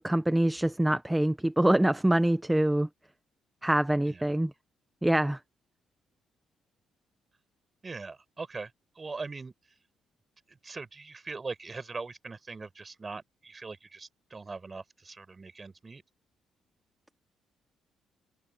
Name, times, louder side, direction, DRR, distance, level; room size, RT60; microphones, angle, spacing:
voice 1, 0.0-2.9 3.6-4.5 5.0-5.4, right 1 dB, 10° right, 0.8 m, -25 dB
voice 2, 7.8-9.5 10.5-16.0, right 4 dB, 30° right, 6.0 m, -41 dB
cardioid pair, 90°, 0 cm